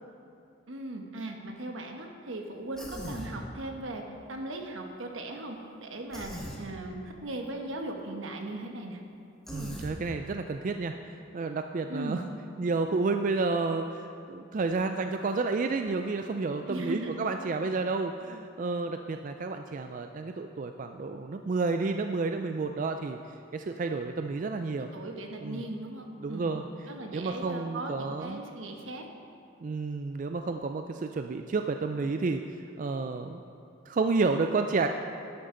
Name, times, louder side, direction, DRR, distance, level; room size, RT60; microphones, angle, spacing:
voice 1, 0.7-9.0 11.9-12.3 16.7-17.2 24.8-26.6 26.9-29.1, right 2 dB, 80° right, 3 dB, 1.2 m, -38 dB
Human voice, 2.7-3.3 6.1-6.6 9.5-9.9, equal, 5° left, 1.4 m, -39 dB
voice 2, 9.5-10.9 11.3-12.2 12.6-23.2 23.5-24.9 25.4-25.6 26.2-26.6 27.1-28.4 29.6-32.4 32.8-33.4 33.9-34.9, right 3 dB, 40° right, 6 dB, 0.3 m, -30 dB
11.5 x 11.0 x 3.8 m, 2.5 s
head